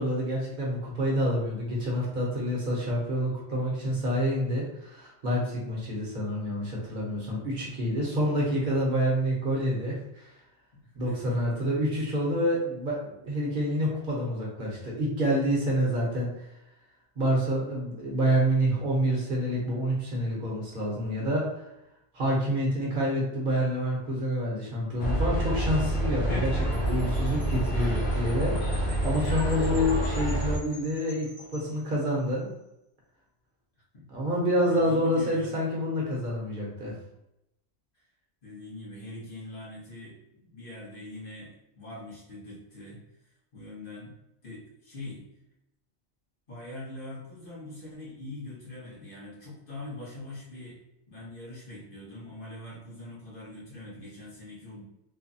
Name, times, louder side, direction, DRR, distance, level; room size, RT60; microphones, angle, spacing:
voice 1, 0.0-10.4 10.9-16.6 17.2-21.7 22.1-32.5 34.1-36.9, equal, 55° right, -3 dB, 0.9 m, -28 dB
voice 2, 10.8-11.4 11.9-12.0 33.9-34.1 34.6-35.5 37.9-38.0 38.4-44.1 44.4-45.2 46.5-50.8 51.1-54.9, left 1 dB, 55° left, -7 dB, 1.4 m, -43 dB
sound 1, 25.0-30.6, right 1 dB, 75° left, 0.9 m, -27 dB
Wind chime, 26.7-32.4, left 1 dB, 20° left, 0.8 m, -49 dB
3.2 x 2.2 x 2.6 m, 0.87 s
omnidirectional pair, 1.1 m